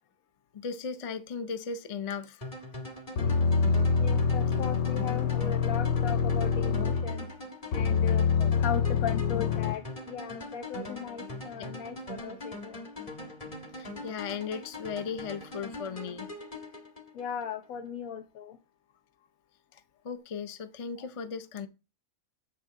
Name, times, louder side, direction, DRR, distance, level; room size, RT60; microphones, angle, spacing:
voice 1, 0.5-2.4 8.4-8.7 9.3-9.4 11.6-11.7 13.8-16.3 19.7-21.7, left 6 dB, 45° left, 0.4 m, -37 dB
sound 1, 2.4-17.5, left 1 dB, 25° left, 1.4 m, -42 dB
sound 2, 3.2-7.3 7.7-9.7, left 6 dB, 65° left, 0.8 m, -26 dB
voice 2, 4.0-7.3 7.7-8.3 8.6-12.8 17.1-18.6 21.0-21.1, left 7 dB, 80° left, 1.2 m, -37 dB
8.4 x 6.5 x 3.7 m
omnidirectional pair, 1.4 m